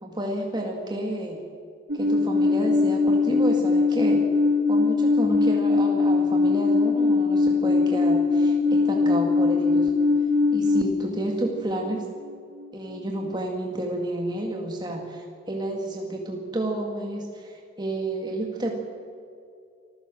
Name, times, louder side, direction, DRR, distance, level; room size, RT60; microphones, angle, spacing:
voice 1, 0.0-1.4 1.9-4.2 4.7-9.9 10.5-12.1 12.7-18.8, right 1 dB, 25° right, 1 dB, 2.0 m, -30 dB
Alarm, 1.9-10.8, left 3 dB, 75° right, 1.6 m, -21 dB
25.5 x 15.0 x 7.6 m, 2.4 s
head